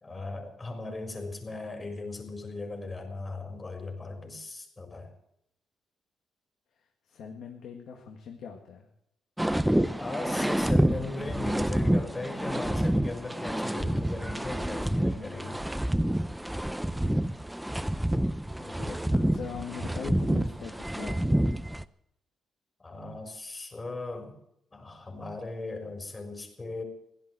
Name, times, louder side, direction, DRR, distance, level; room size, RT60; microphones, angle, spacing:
voice 1, 0.0-5.1 10.0-15.6 22.8-24.4 24.7-26.8, left 3 dB, 30° left, 2 dB, 4.2 m, -38 dB
voice 2, 7.1-8.9 18.6-21.4, left 6 dB, 75° left, 2 dB, 1.9 m, -41 dB
sound 1, 9.4-21.8, right 1 dB, 5° right, 0.6 m, -28 dB
16.5 x 11.0 x 7.8 m, 0.78 s
cardioid pair, 90°, 0 cm